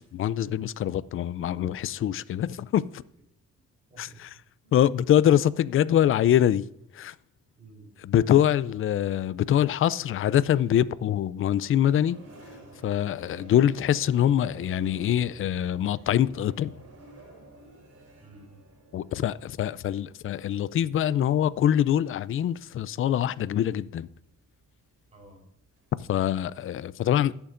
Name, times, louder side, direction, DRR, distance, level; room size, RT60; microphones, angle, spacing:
voice 1, 0.0-3.0 4.0-4.1 4.7-6.6 6.9-7.1 8.1-12.2 12.8-16.7 18.9-24.1 26.0-27.3, left 10 dB, 45° left, 0.4 m, -24 dB
voice 2, 3.9-4.3 4.6-4.8 7.5-8.1 13.2-13.5 18.2-18.6 19.0-19.2 25.1-25.5, right 3 dB, 25° right, 4.2 m, -53 dB
sound 1, 11.0-25.9, right 2 dB, 50° right, 4.3 m, -52 dB
17.0 x 7.1 x 2.6 m
cardioid pair, 90°, 30 cm